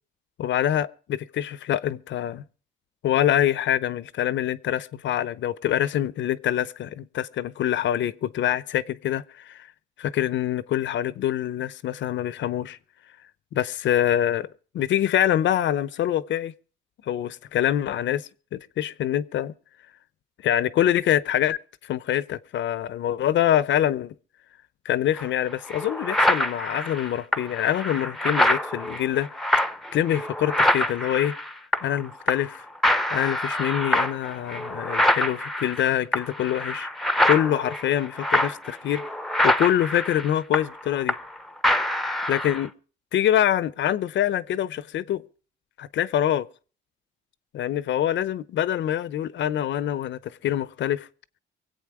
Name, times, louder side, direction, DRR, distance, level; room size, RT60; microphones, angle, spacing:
voice 1, 0.4-2.4 3.0-9.7 10.0-12.8 13.5-14.5 14.7-16.5 17.1-19.5 20.4-24.1 24.8-29.3 29.9-31.3 31.8-32.7 33.1-36.9 37.3-39.0 39.4-41.1 42.3-42.7 43.1-45.2 45.8-46.5 47.5-51.1, left 11 dB, 70° left, 0.7 m, -25 dB
sound 1, 25.2-25.3 25.7-32.0 32.3-32.6 32.8-41.4 41.6-42.7, left 1 dB, ahead, 0.7 m, -25 dB
24.0 x 8.3 x 4.8 m
cardioid pair, 90°, 20 cm